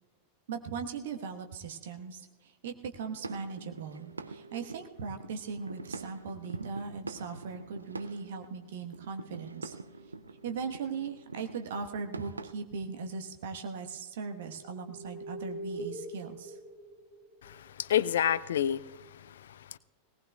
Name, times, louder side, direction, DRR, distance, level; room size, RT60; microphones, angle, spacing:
voice 1, 0.5-9.7 10.3-16.6, right 5 dB, 55° right, 5 dB, 1.1 m, -39 dB
sound 1, 2.9-12.5, right 3 dB, 80° right, 0.4 m, -45 dB
sound 2, 3.3-5.2 7.5-8.4 9.0-11.3 12.1-12.4 12.7-13.2 13.8-18.6, right 1 dB, 5° right, 3.5 m, -47 dB
voice 2, 17.4-19.8, left 10 dB, 60° left, 19 dB, 0.3 m, -30 dB
19.5 x 18.5 x 2.3 m, 1.4 s
figure-of-eight pair, 90°, 0 cm